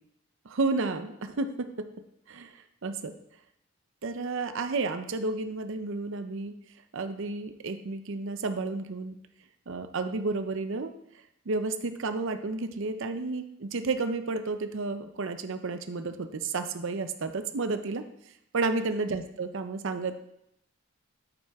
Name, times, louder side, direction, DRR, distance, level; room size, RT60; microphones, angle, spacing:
voice 1, 0.4-1.9 2.3-3.1 4.0-6.5 6.9-9.2 9.7-10.9 11.5-18.0 18.5-20.2, right 3 dB, 65° right, 9 dB, 0.6 m, -31 dB
8.7 x 7.9 x 3.5 m, 0.78 s
head